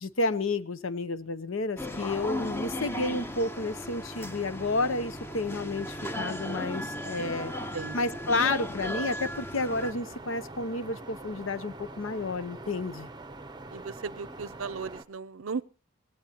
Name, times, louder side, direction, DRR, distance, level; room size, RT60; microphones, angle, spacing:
voice 1, 0.0-7.5 7.9-13.1, left 2 dB, 65° left, 14 dB, 0.8 m, -31 dB
sound 1, 1.8-9.9, left 1 dB, 10° left, 0.8 m, -36 dB
sound 2, 9.7-15.0, right 2 dB, 20° right, 0.7 m, -44 dB
voice 2, 13.7-15.6, right 5 dB, 70° right, 19 dB, 0.6 m, -36 dB
19.5 x 17.5 x 3.0 m, 0.36 s
head